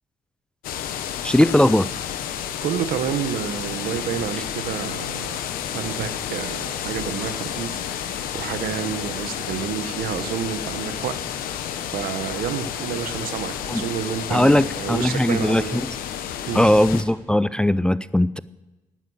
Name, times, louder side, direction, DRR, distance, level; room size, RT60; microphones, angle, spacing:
sound 1, 0.6-17.0, left 9 dB, 85° left, 1.1 m, -31 dB
voice 1, 1.2-1.9 13.7-13.9 14.3-16.0 16.5-18.4, left 1 dB, 5° left, 17 dB, 0.4 m, -19 dB
voice 2, 2.6-5.4 5.7-11.2 11.9-15.8 16.5-16.7, right 9 dB, 85° right, 12 dB, 1.0 m, -29 dB
12.0 x 9.3 x 8.3 m, 1.1 s
cardioid pair, 85°, 15 cm